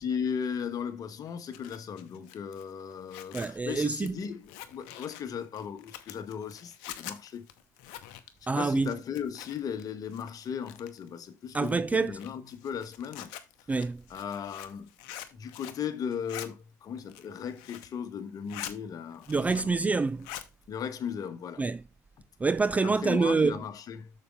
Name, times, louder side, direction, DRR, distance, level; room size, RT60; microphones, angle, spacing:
voice 1, 0.0-7.5 8.4-13.3 14.1-14.9 15.3-20.0 20.7-21.6 22.8-24.1, left 7 dB, 45° left, 1.3 m, -37 dB
Zipper (clothing), 1.3-9.8 10.1-11.1 11.5-15.9 16.1-16.5 16.9-18.0 18.3-18.8 19.1-19.8 20.1-20.5, left 12 dB, 65° left, 0.8 m, -45 dB
voice 2, 3.3-4.2 8.5-8.9 11.5-12.2 13.7-14.0 19.3-20.3 21.6-21.8 22.4-23.6, right 4 dB, 15° right, 0.3 m, -26 dB
6.7 x 6.6 x 3.6 m
figure-of-eight pair, 60°, 9 cm